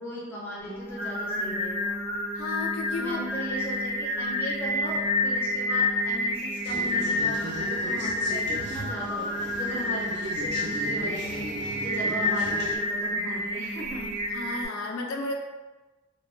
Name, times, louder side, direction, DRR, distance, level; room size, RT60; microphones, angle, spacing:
voice 1, 0.0-2.0 3.0-11.5 11.8-14.1, equal, 10° left, -6 dB, 0.5 m, -38 dB
Singing, 0.6-14.6, left 1 dB, 20° right, 0.7 m, -29 dB
voice 2, 2.3-3.2 14.3-15.4, left 3 dB, 80° left, 1 dB, 0.4 m, -32 dB
sound 1, 6.6-12.8, right 2 dB, 50° right, 0.4 m, -38 dB
2.2 x 2.1 x 3.0 m, 1.2 s
head